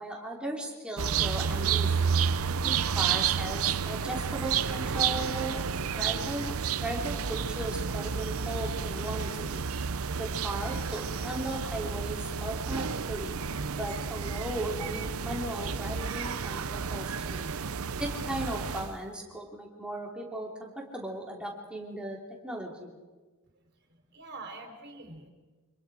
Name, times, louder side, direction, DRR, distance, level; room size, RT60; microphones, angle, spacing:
voice 1, 0.0-2.1 2.6-5.6 5.9-6.5 6.8-9.7 10.2-13.4 13.7-17.4 18.0-22.2 22.4-22.9, right 1 dB, 5° right, -2 dB, 3.5 m, -37 dB
sound 1, 1.0-19.0, right 6 dB, 80° right, 0.7 m, -31 dB
voice 2, 23.7-25.3, right 3 dB, 50° right, 4 dB, 3.7 m, -45 dB
29.0 x 26.5 x 5.0 m, 1.3 s
head